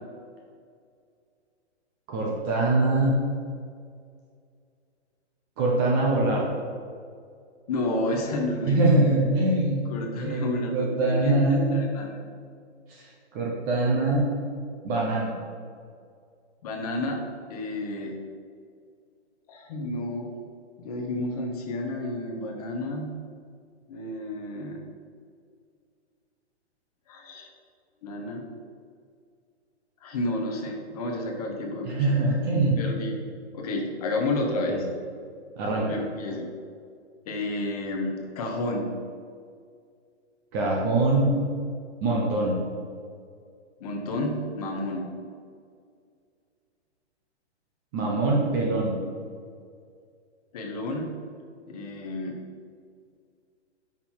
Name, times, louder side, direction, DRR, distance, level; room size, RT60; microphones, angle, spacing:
voice 1, 2.1-3.1 5.6-6.5 8.6-9.8 10.1-11.8 12.9-13.0 13.3-14.3 14.8-15.3 31.8-32.9 34.7-34.8 35.6-35.9 40.5-41.3 42.0-42.6 47.9-49.0, right 2 dB, 15° right, -3 dB, 0.8 m, -23 dB
voice 2, 7.7-9.0 9.9-12.1 16.6-17.2 17.5-18.1 19.5-20.3 20.8-23.1 23.9-24.8 27.1-27.5 28.0-28.5 30.0-32.1 32.8-33.1 33.5-34.9 35.9-36.5 37.2-38.9 43.8-45.1 50.5-51.1 51.7-52.4, left 1 dB, 35° left, 2 dB, 1.2 m, -31 dB
8.9 x 5.9 x 4.5 m, 2.2 s
hypercardioid pair, 170°, 34 cm